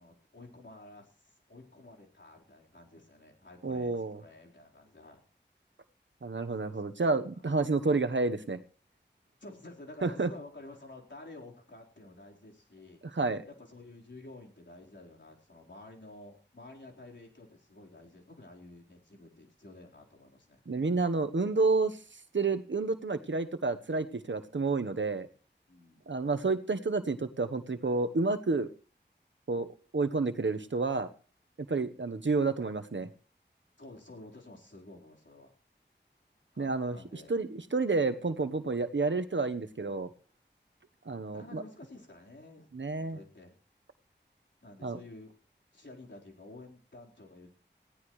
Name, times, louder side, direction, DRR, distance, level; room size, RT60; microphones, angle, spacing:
voice 1, 0.0-5.2 6.6-6.9 9.4-13.0 13.5-20.6 25.7-26.0 31.9-32.1 33.8-35.5 36.5-37.3 41.3-42.7 43.0-43.5 44.6-45.3 45.7-47.5, left 2 dB, 75° left, -1 dB, 4.2 m, -51 dB
voice 2, 3.6-4.2 6.2-8.6 10.0-10.3 13.1-13.4 20.7-22.0 22.3-25.3 26.1-28.7 29.5-29.7 29.9-31.1 31.7-33.1 36.6-40.1 41.1-41.6 42.7-43.2 44.8-45.0, right 3 dB, 80° right, 10 dB, 1.1 m, -30 dB
20.0 x 16.5 x 3.2 m, 0.39 s
wide cardioid pair, 50°, 19 cm